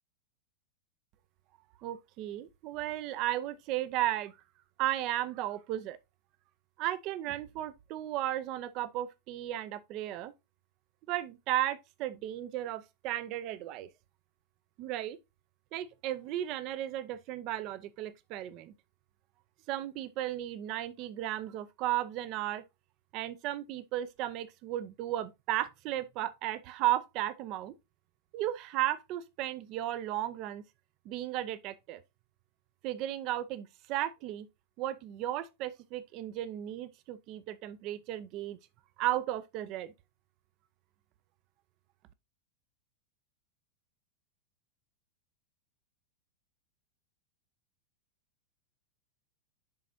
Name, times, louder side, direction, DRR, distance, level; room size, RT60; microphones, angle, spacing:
voice 1, 1.8-4.3 4.8-6.0 6.8-10.3 11.1-13.9 14.8-15.2 15.7-18.7 19.7-22.6 23.1-27.7 28.3-30.6 31.0-32.0 32.8-34.5 34.8-38.6 39.0-39.9, right 13 dB, 40° right, 0.5 m, -35 dB
10.5 x 4.1 x 2.7 m
figure-of-eight pair, 90°, 0 cm